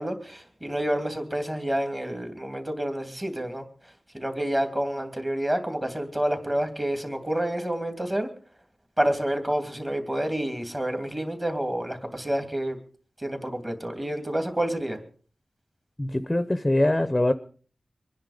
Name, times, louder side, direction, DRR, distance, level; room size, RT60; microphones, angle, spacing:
voice 1, 0.0-3.7 4.1-8.3 9.0-12.8 13.2-15.0, right 1 dB, 20° right, 7 dB, 2.8 m, -28 dB
voice 2, 16.0-17.3, left 1 dB, 15° left, 12 dB, 0.9 m, -23 dB
24.5 x 10.0 x 5.1 m, 0.42 s
wide cardioid pair, 105°, 0 cm